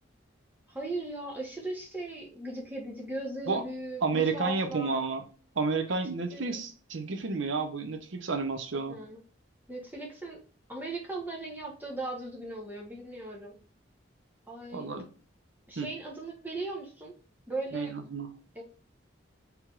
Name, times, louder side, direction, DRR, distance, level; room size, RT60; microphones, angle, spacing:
voice 1, 0.7-5.0 6.3-6.6 8.9-9.2 9.7-10.4 10.7-13.5 14.5-15.0 15.7-17.1 17.5-17.9 18.5-18.6, right 2 dB, 10° right, 1.0 m, -38 dB
voice 2, 4.0-5.2 5.6-9.0 14.7-15.1 15.8-15.9 17.7-18.4, right 4 dB, 80° right, 0.6 m, -31 dB
4.5 x 3.4 x 2.4 m
head